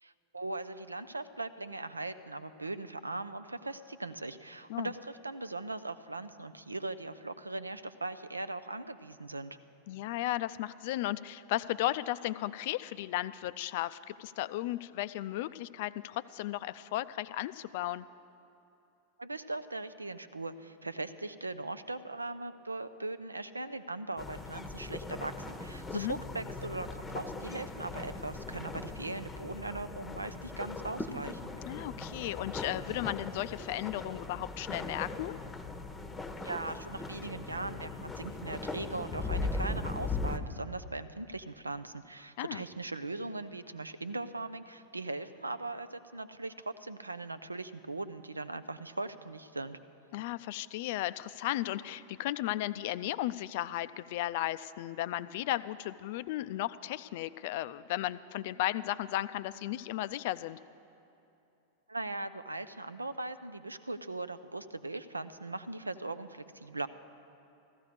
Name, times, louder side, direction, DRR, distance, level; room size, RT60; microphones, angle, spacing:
voice 1, 0.0-9.6 19.2-31.6 36.4-49.8 61.9-66.9, right 2 dB, 80° right, 13 dB, 0.5 m, -39 dB
voice 2, 9.9-18.0 25.9-26.2 31.7-35.3 42.4-42.6 50.1-60.6, left 15 dB, 50° left, 15 dB, 0.4 m, -35 dB
sound 1, 24.2-40.4, left 3 dB, 10° left, 0.9 m, -39 dB
15.0 x 14.0 x 5.1 m, 2.9 s
figure-of-eight pair, 90°, 0 cm